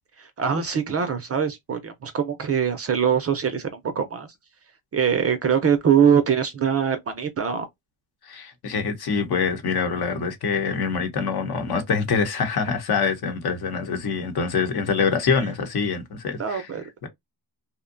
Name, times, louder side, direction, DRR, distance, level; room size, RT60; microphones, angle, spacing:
voice 1, 0.2-4.3 4.9-7.7 16.4-16.8, right 7 dB, 30° right, 0.5 m, -23 dB
voice 2, 8.2-16.7 17.0-17.1, left 5 dB, 50° left, 0.9 m, -25 dB
2.7 x 2.2 x 2.5 m
cardioid pair, 95°, 48 cm